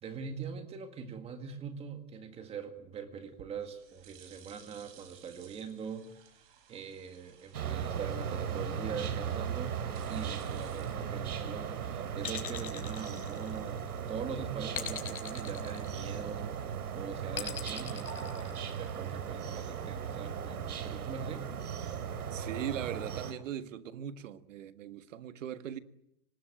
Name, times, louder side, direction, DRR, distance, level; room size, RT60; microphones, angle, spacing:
voice 1, 0.0-9.8 10.1-21.5, right 6 dB, 15° right, 1.8 m, -43 dB
sound 1, 3.2-11.7, right 9 dB, 35° right, 4.7 m, -59 dB
sound 2, 7.5-23.3, right 7 dB, 80° right, 3.4 m, -37 dB
sound 3, 12.2-13.9 14.7-16.4 17.3-19.0, left 8 dB, 75° left, 4.9 m, -41 dB
voice 2, 22.3-25.8, right 10 dB, 55° right, 1.8 m, -39 dB
24.5 x 20.0 x 9.1 m
hypercardioid pair, 165°, 44 cm